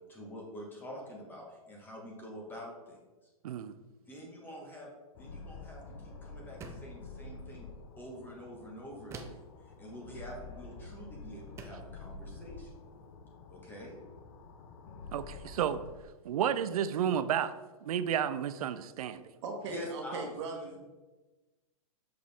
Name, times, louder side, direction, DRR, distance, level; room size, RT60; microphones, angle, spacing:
voice 1, 0.1-3.0 4.0-4.9 5.2-7.7 8.0-9.4 9.8-12.7 13.5-14.0 19.7-20.3 20.6-20.8, equal, 10° left, -1 dB, 1.3 m, -46 dB
voice 2, 3.4-3.8 15.1-15.8 16.2-19.2, right 9 dB, 75° right, 13 dB, 0.5 m, -32 dB
sound 1, 5.1-16.0, left 3 dB, 50° left, 0.7 m, -48 dB
sound 2, 6.6-7.0 9.1-9.6 10.9-11.0 11.6-11.9, right 4 dB, 15° right, 0.4 m, -46 dB
voice 3, 19.4-20.8, right 3 dB, 50° right, 2 dB, 1.3 m, -39 dB
6.3 x 4.9 x 3.5 m, 1.2 s
hypercardioid pair, 150°, 19 cm